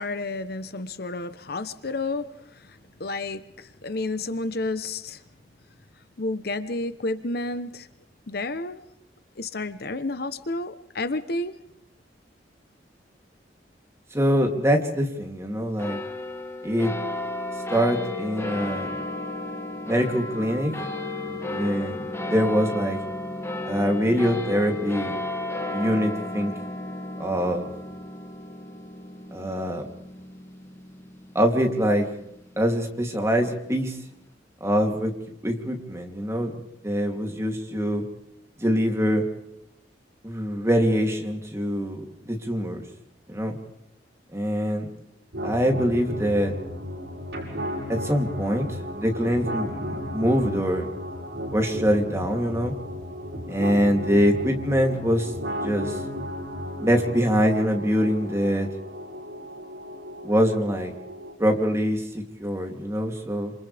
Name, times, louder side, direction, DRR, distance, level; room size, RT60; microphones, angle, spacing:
voice 1, 0.0-5.2 6.2-7.9 8.3-8.8 9.4-11.5, left 2 dB, 60° left, 12 dB, 1.0 m, -31 dB
voice 2, 14.1-16.0 16.6-16.9 17.7-18.9 19.9-20.7 21.2-22.0 22.3-23.0 23.6-25.2 25.7-26.5 27.2-27.7 29.3-29.9 31.3-32.1 32.6-34.0 34.6-35.1 35.4-36.5 36.8-38.0 38.6-39.2 40.2-42.0 42.3-42.8 43.3-43.6 44.3-44.9 45.4-46.5 47.9-48.7 48.9-50.9 51.5-52.7 53.5-55.3 55.6-56.0 56.8-58.7 60.2-60.9 61.4-63.5, equal, 15° right, 2 dB, 3.1 m, -24 dB
sound 1, 15.8-32.5, left 2 dB, 15° left, 2.2 m, -33 dB
sound 2, 45.3-61.3, equal, 85° right, 6.9 m, -34 dB
28.5 x 27.0 x 3.5 m, 0.80 s
head